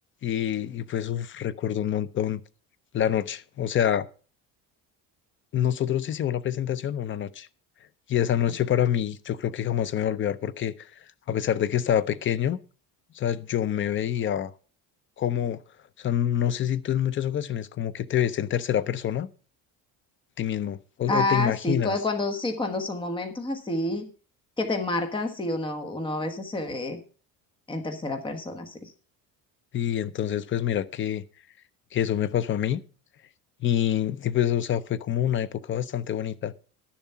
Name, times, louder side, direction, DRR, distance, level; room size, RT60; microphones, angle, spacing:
voice 1, 0.2-2.4 2.9-4.1 5.5-7.5 8.1-10.9 11.3-12.6 13.1-14.5 15.2-15.6 16.0-19.3 20.4-21.9 29.7-31.2 31.9-32.8 33.6-36.5, left 10 dB, 30° left, 0.6 m, -26 dB
voice 2, 21.1-24.0 24.6-27.0 27.7-28.9, left 2 dB, 15° left, 1.2 m, -29 dB
11.5 x 7.2 x 5.6 m
cardioid pair, 150°, 38 cm